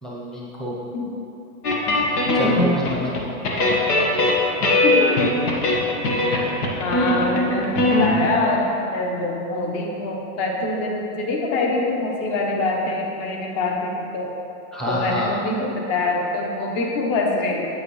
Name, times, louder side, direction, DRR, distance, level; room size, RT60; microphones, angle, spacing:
voice 1, 0.0-0.7 2.3-3.2 5.6-5.7 14.7-15.3, equal, ahead, -6 dB, 0.9 m, -27 dB
sound 1, 1.6-3.2 3.4-8.3, left 2 dB, 80° left, 1.7 m, -20 dB
voice 2, 6.8-14.3 14.9-17.7, left 2 dB, 30° left, 0 dB, 1.2 m, -24 dB
8.6 x 8.2 x 3.2 m, 2.9 s
hypercardioid pair, 135°, 46 cm